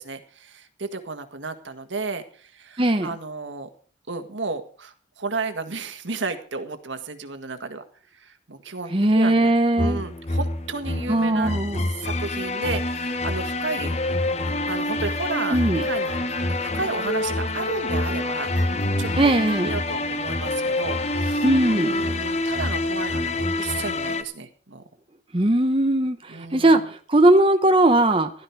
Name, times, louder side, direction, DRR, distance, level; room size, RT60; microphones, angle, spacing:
voice 1, 0.0-3.7 4.1-7.8 8.1-11.5 11.9-14.0 14.7-18.5 19.0-19.4 19.6-24.8 26.3-26.7, right 3 dB, 80° right, 7 dB, 1.8 m, -33 dB
voice 2, 2.8-3.1 8.9-10.0 11.1-11.8 15.5-15.8 19.2-19.8 21.4-22.0 25.3-28.3, right 1 dB, 30° right, 6 dB, 0.9 m, -19 dB
sound 1, 9.8-24.2, left 2 dB, 35° left, 0.9 m, -26 dB
sound 2, 12.5-13.5 14.5-19.7, left 1 dB, 50° left, 7.5 m, -45 dB
15.0 x 12.0 x 4.7 m, 0.43 s
head